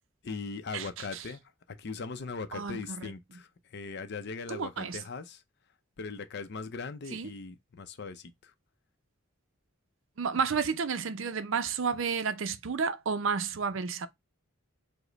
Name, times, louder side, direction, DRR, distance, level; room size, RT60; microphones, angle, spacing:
voice 1, 0.2-1.4 1.8-5.4 6.0-8.5, left 4 dB, 50° left, 0.5 m, -39 dB
voice 2, 2.5-3.1 4.5-5.0 7.1-7.3 10.2-14.1, right 5 dB, 65° right, 0.5 m, -31 dB
4.9 x 2.1 x 3.9 m
head